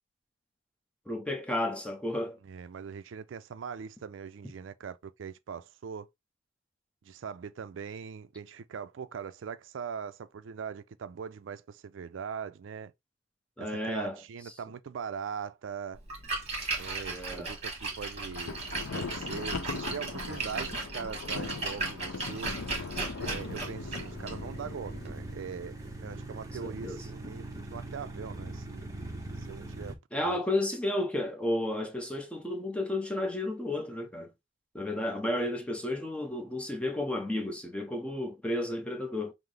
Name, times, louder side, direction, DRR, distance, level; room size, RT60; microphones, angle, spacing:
voice 1, 1.1-2.4 13.6-14.2 17.1-17.5 26.8-27.0 30.1-34.3 34.7-39.3, left 1 dB, 5° left, 0.7 m, -32 dB
voice 2, 2.4-6.1 7.0-12.9 13.6-16.0 16.8-18.6 18.9-22.5 23.2-25.8 26.0-28.9 29.4-30.4 34.8-34.9, right 6 dB, 75° right, 0.4 m, -41 dB
Splash splatter, 16.0-25.9, right 3 dB, 35° right, 1.3 m, -37 dB
Thunder, 18.2-25.4, left 4 dB, 90° left, 0.6 m, -40 dB
sound 1, 23.2-29.9, right 2 dB, 20° right, 0.8 m, -42 dB
5.7 x 2.0 x 3.3 m
head